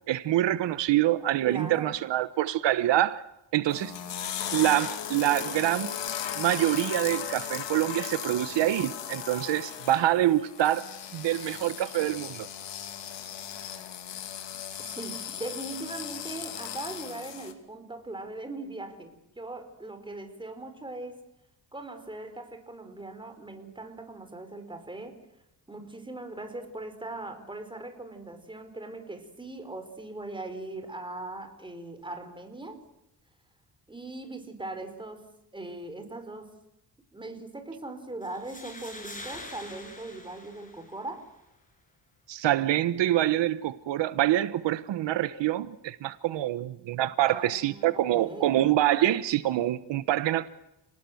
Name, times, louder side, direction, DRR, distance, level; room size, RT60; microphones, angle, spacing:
voice 1, 0.1-3.2 3.5-3.9 4.5-5.9 6.3-12.5 42.3-50.5, right 13 dB, 85° right, 1.2 m, -26 dB
voice 2, 1.4-2.0 14.8-21.2 21.7-25.2 25.7-32.8 33.9-35.3 35.5-36.5 37.1-41.3 47.3-48.6, right 2 dB, 10° right, 4.6 m, -40 dB
sound 1, 3.7-17.5, left 9 dB, 85° left, 3.0 m, -37 dB
sound 2, 38.2-41.2, left 2 dB, 20° left, 6.8 m, -45 dB
30.0 x 19.5 x 7.9 m
cardioid pair, 130°, 43 cm